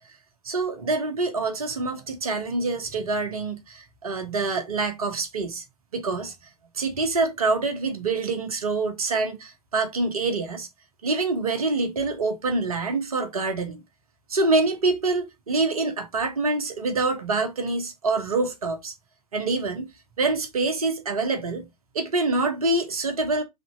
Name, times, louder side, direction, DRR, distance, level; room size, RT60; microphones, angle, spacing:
voice 1, 0.4-5.6 5.9-6.3 6.7-10.7 11.0-13.8 14.3-18.9 19.3-19.9 20.2-21.7 21.9-23.4, right 3 dB, 65° right, 1.1 m, -26 dB
3.4 x 2.8 x 4.2 m
figure-of-eight pair, 110°, 20 cm